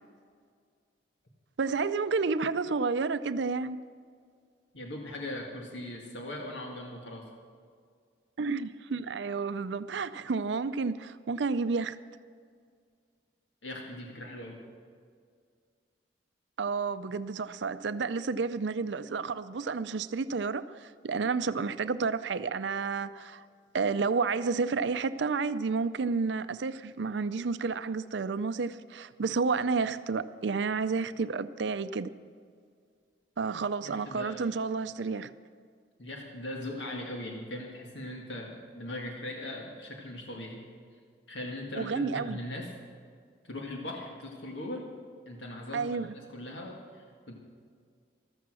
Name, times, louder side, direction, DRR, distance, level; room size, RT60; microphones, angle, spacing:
voice 1, 1.6-3.8 8.4-12.0 16.6-23.5 23.7-32.1 33.4-35.3 41.7-42.4 45.7-46.1, right 4 dB, 80° right, 0.5 m, -30 dB
voice 2, 4.7-7.2 13.6-14.6 33.8-34.4 36.0-40.6 41.3-42.7 43.4-44.9 45.3-47.3, left 1 dB, 85° left, 2.0 m, -40 dB
14.5 x 13.5 x 6.2 m
head